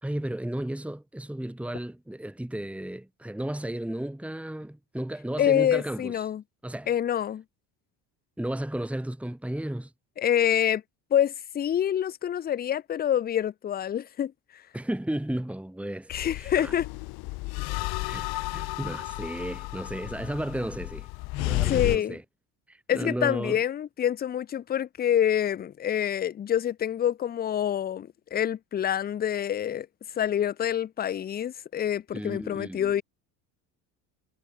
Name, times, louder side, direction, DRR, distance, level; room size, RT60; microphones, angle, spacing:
voice 1, 0.0-6.3 6.6-6.9 8.4-9.9 14.7-16.7 18.0-21.1 21.3-22.2 22.7-23.6 32.1-32.9, right 1 dB, 5° right, 2.7 m, -34 dB
voice 2, 5.4-6.4 6.9-7.4 10.2-10.8 11.1-14.6 16.1-16.9 21.6-22.2 22.9-29.9 30.2-33.0, left 10 dB, 25° left, 0.5 m, -26 dB
sound 1, 16.1-22.0, left 23 dB, 65° left, 0.7 m, -32 dB
cardioid pair, 120°, 41 cm